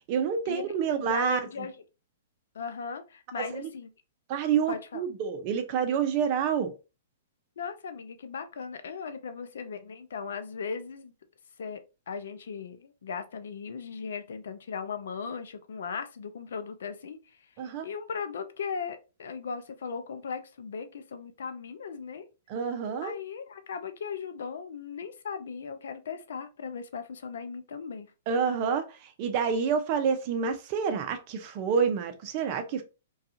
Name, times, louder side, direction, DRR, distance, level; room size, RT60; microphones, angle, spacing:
voice 1, 0.1-1.4 3.4-3.7 4.3-6.7 17.6-17.9 22.5-23.1 28.3-32.8, right 6 dB, 45° right, 0.6 m, -28 dB
voice 2, 1.0-1.7 2.5-3.9 4.7-5.0 7.6-11.1 11.6-17.5 17.8-22.3 23.0-28.1, left 6 dB, 70° left, 0.4 m, -38 dB
2.4 x 2.3 x 2.7 m
hypercardioid pair, 120°, 0 cm